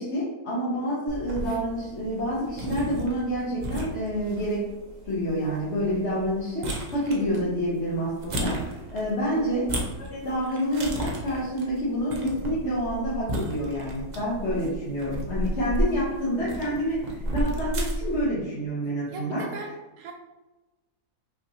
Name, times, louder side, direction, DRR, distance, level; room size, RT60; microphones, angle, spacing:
voice 1, 0.0-4.7 5.0-9.7 10.0-19.5, equal, 50° left, -8 dB, 1.2 m, -28 dB
sound 1, 1.1-18.2, right 1 dB, 50° right, 0.5 m, -34 dB
voice 2, 9.2-9.6 19.1-20.1, right 5 dB, 75° right, 1 dB, 1.0 m, -37 dB
5.6 x 3.0 x 2.8 m, 1.1 s
omnidirectional pair, 1.6 m